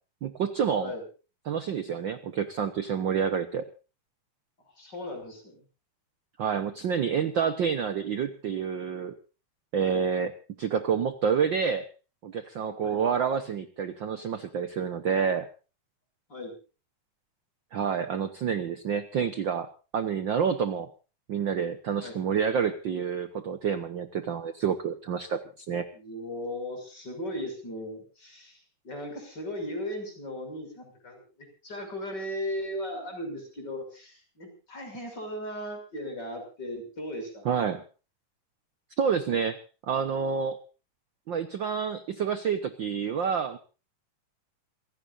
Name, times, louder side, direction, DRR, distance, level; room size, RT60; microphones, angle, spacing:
voice 1, 0.2-0.9 1.5-3.7 6.4-9.1 9.7-10.3 10.6-11.9 12.2-15.5 17.7-20.9 21.3-25.9 37.4-37.8 39.0-40.6 41.3-43.6, right 7 dB, 70° right, 10 dB, 1.1 m, -28 dB
voice 2, 4.7-5.6 9.8-10.0 12.8-13.0 16.3-16.5 22.0-22.2 25.9-37.5, left 1 dB, 30° left, 5 dB, 6.7 m, -37 dB
27.5 x 17.0 x 2.6 m, 0.34 s
omnidirectional pair, 3.6 m